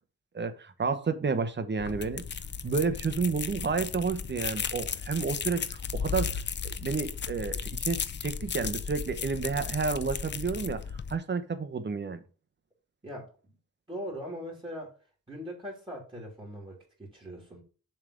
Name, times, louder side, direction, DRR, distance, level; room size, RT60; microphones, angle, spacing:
voice 1, 0.3-2.2 2.6-6.3 6.6-10.8 11.1-12.2, right 5 dB, 35° right, 0.9 m, -30 dB
sound 1, 1.8-11.2, left 6 dB, 35° left, 0.5 m, -35 dB
voice 2, 13.0-13.6 13.9-14.9 15.3-17.6, equal, 15° right, 3.0 m, -41 dB
7.4 x 3.5 x 6.3 m
wide cardioid pair, 120°, 33 cm